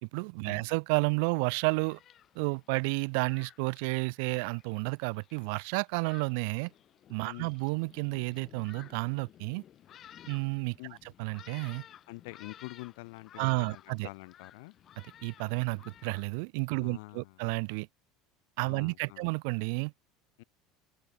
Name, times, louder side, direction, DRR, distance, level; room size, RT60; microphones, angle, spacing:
voice 1, 0.0-2.0 2.4-6.7 7.1-9.6 10.3-10.8 11.2-11.8 13.4-14.1 15.2-17.9 18.6-19.9, right 34 dB, 75° right, 0.5 m, -31 dB
Thunderstorm, 1.4-16.2, left 11 dB, 40° left, 2.3 m, -56 dB
voice 2, 7.2-7.5 10.8-11.0 12.1-14.7 16.8-17.5 18.6-19.3 20.4-20.5, left 26 dB, 80° left, 1.1 m, -46 dB
open air
supercardioid pair, 115°, 0 cm